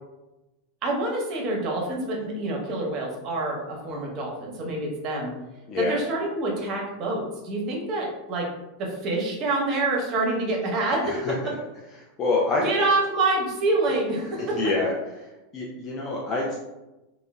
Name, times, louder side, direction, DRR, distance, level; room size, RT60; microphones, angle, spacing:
voice 1, 0.8-5.3 5.8-8.5 8.8-11.3 12.6-14.7, right 2 dB, 40° right, 0 dB, 0.8 m, -26 dB
voice 2, 5.7-6.0 11.0-11.5 12.2-12.7 14.4-14.9 15.2-15.3 15.5-16.6, left 3 dB, 30° left, -3 dB, 0.4 m, -26 dB
3.7 x 2.1 x 2.2 m, 1.0 s
figure-of-eight pair, 85°, 0 cm